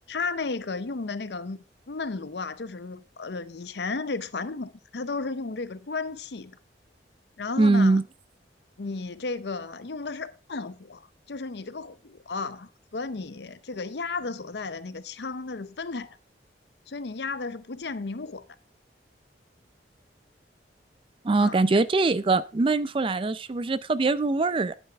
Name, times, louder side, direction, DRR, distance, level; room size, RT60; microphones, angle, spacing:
voice 1, 0.1-1.6 1.9-6.6 7.4-8.0 8.8-16.2 16.9-18.4 21.4-21.6, left 3 dB, 65° left, 0.7 m, -34 dB
voice 2, 7.6-8.0 21.2-24.7, right 3 dB, 30° right, 0.4 m, -22 dB
10.5 x 9.0 x 3.5 m
head